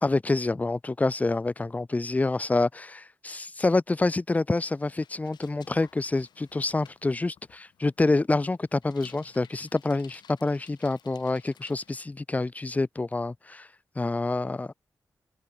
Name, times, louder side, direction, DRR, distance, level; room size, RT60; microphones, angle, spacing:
voice 1, 0.0-13.7 14.0-14.7, left 2 dB, 20° left, 0.5 m, -27 dB
Bicycle, 4.5-12.0, left 8 dB, 90° left, 1.5 m, -56 dB
open air
cardioid pair, 70°, 7 cm